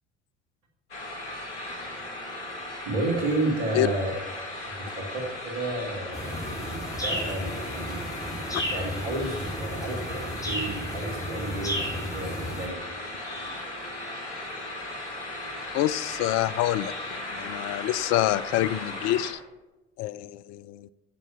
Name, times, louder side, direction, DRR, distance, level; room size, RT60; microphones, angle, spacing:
sound 1, 0.9-19.3, left 1 dB, 80° left, 2.4 m, -37 dB
voice 1, 2.8-4.1 4.8-8.0 8.7-12.8, right 2 dB, 70° right, 1 dB, 2.9 m, -31 dB
sound 2, 6.1-12.7, equal, 10° left, 3.6 m, -33 dB
voice 2, 15.7-19.4 20.0-20.9, left 14 dB, 50° left, 17 dB, 0.5 m, -27 dB
8.4 x 6.9 x 7.1 m, 1.1 s
figure-of-eight pair, 60°, 35 cm